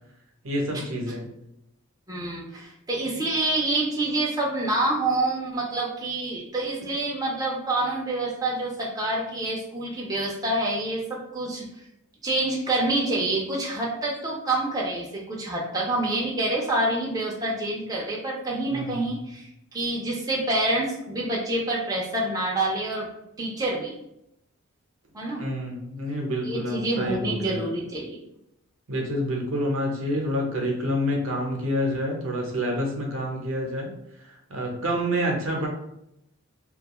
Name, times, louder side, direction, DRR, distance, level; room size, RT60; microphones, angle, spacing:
voice 1, 0.4-1.2 18.7-18.9 25.4-27.6 28.9-33.9 34.5-35.7, equal, 70° right, 1 dB, 0.7 m, -27 dB
voice 2, 2.1-11.7 12.2-23.1 23.4-23.9 25.1-25.4 26.4-28.2, right 2 dB, 20° right, -3 dB, 0.4 m, -27 dB
2.4 x 2.2 x 2.9 m, 0.80 s
head